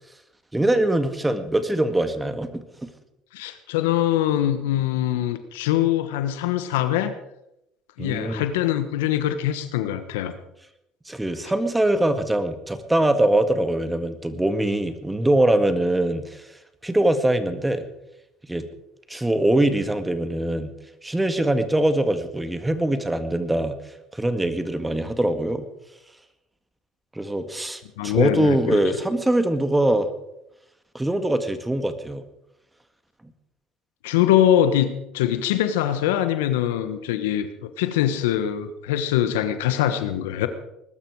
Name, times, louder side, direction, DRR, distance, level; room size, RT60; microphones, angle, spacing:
voice 1, 0.5-2.9 8.0-8.5 11.1-16.5 16.8-17.9 18.5-18.6 19.1-20.7 21.0-23.8 24.1-25.7 27.2-30.1 30.9-32.2 33.2-33.3, right 1 dB, 10° right, 10 dB, 1.9 m, -23 dB
voice 2, 3.3-7.1 8.0-10.3 28.0-28.8 34.0-40.5, left 11 dB, 85° left, 11 dB, 1.3 m, -23 dB
21.0 x 12.5 x 4.8 m, 0.84 s
supercardioid pair, 80°, 0 cm